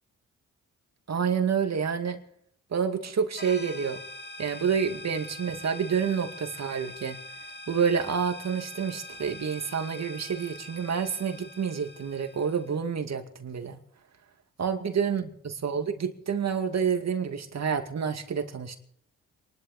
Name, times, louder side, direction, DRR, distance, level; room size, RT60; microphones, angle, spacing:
voice 1, 1.1-2.2 2.7-4.0 4.4-7.4 7.7-13.8 14.6-18.8, right 6 dB, 55° right, 6 dB, 2.3 m, -28 dB
sound 1, 3.4-12.8, left 1 dB, 30° left, 2.1 m, -44 dB
28.0 x 12.0 x 4.1 m, 0.66 s
cardioid pair, 70°, 33 cm